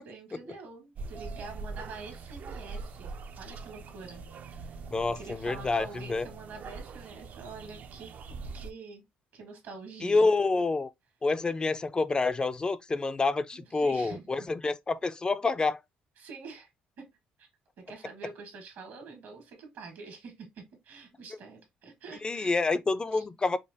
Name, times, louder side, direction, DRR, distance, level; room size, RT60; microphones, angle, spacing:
voice 1, 0.0-4.8 5.1-9.0 9.3-10.3 13.5-14.3 16.2-16.7 17.0-17.1 17.4-17.5 17.9-22.6 23.1-23.2, right 4 dB, 75° right, 1.6 m, -46 dB
sound 1, 1.0-8.7, right 4 dB, 55° right, 0.4 m, -43 dB
voice 2, 4.9-6.3 10.0-10.9 11.2-15.8 22.2-23.6, left 3 dB, 25° left, 0.3 m, -28 dB
4.9 x 2.1 x 2.6 m
supercardioid pair, 75°, 3 cm